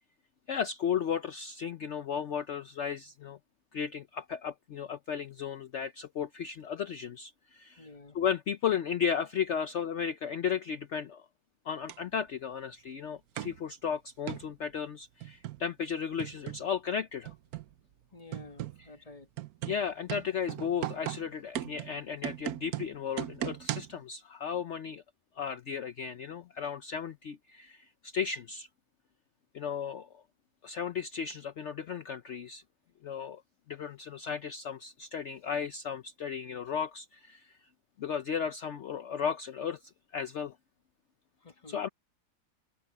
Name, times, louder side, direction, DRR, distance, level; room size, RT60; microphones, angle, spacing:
voice 1, 0.5-3.4 3.7-7.9 8.1-11.3 11.6-17.3 19.7-25.0 25.4-28.7 29.5-30.1 30.6-32.6 33.0-33.4 33.7-37.6 38.0-40.5 41.7-41.9, left 7 dB, 65° left, 0.7 m, -35 dB
voice 2, 7.7-8.2 18.1-19.3 41.4-41.8, left 3 dB, 20° left, 1.6 m, -51 dB
cardboard tube on wall, 11.9-12.0 13.4-13.6 14.3-14.5 15.2-15.7 16.2-16.7 17.3-17.7 18.3-18.9 19.4-24.0, right 13 dB, 65° right, 1.0 m, -37 dB
omnidirectional pair, 2.1 m